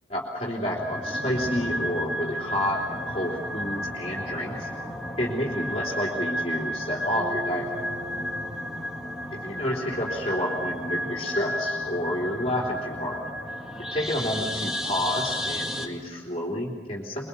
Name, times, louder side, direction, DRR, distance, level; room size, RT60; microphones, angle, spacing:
voice 1, 0.1-4.7 5.2-7.9 9.4-13.2 13.9-17.3, left 1 dB, 35° left, -4 dB, 3.4 m, -30 dB
sound 1, 0.7-15.9, equal, 5° right, 2.0 m, -32 dB
Bass guitar, 7.1-11.2, right 1 dB, 45° right, 2.1 m, -42 dB
24.0 x 23.5 x 7.0 m, 1.5 s
head